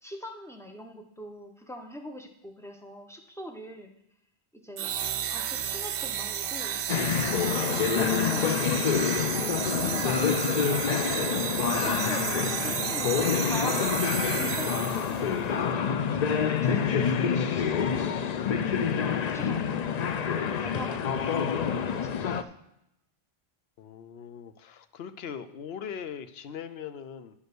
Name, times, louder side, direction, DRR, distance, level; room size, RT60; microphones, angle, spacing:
voice 1, 0.0-3.9 4.5-4.9 5.3-6.8 7.6-9.1 9.4-10.6 11.7-17.1 17.5-18.0 18.9-20.2 20.6-21.7 22.0-22.3, equal, 5° left, 3 dB, 0.9 m, -43 dB
sound 1, 4.8-15.3, right 9 dB, 70° right, 0.7 m, -32 dB
sound 2, 6.9-22.4, left 7 dB, 55° left, 0.5 m, -27 dB
voice 2, 23.8-27.3, left 7 dB, 75° left, 11 dB, 0.9 m, -40 dB
10.0 x 5.4 x 6.1 m, 0.83 s
omnidirectional pair, 1.1 m